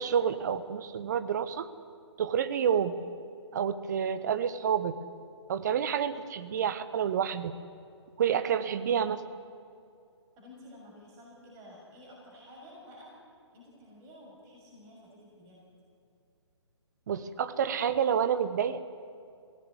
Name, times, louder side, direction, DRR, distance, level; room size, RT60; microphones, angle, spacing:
voice 1, 0.0-1.7 2.2-2.9 3.5-5.0 5.5-7.6 8.2-9.2 17.1-18.8, right 8 dB, 40° right, 14 dB, 1.2 m, -29 dB
voice 2, 10.4-13.1 13.5-15.6, left 1 dB, 20° right, -3 dB, 6.6 m, -51 dB
22.5 x 17.5 x 9.7 m, 2.5 s
figure-of-eight pair, 140°, 15 cm